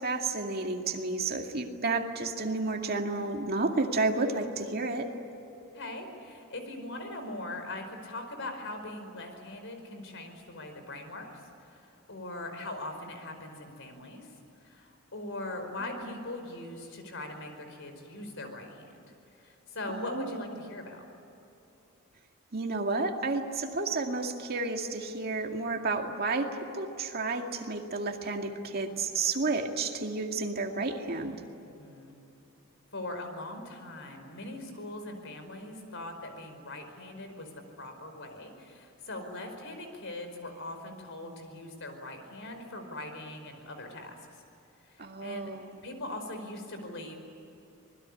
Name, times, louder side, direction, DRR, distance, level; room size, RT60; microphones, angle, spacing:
voice 1, 0.0-5.1 15.9-16.1 19.9-20.4 22.5-31.4 45.0-45.8, right 3 dB, 45° right, 3 dB, 2.2 m, -31 dB
voice 2, 5.7-19.0 19.4-21.1 31.8-32.2 32.9-37.5 37.8-44.2 44.8-45.5 45.8-47.2, left 1 dB, 65° left, 6 dB, 5.0 m, -41 dB
26.0 x 21.0 x 10.0 m, 2.9 s
head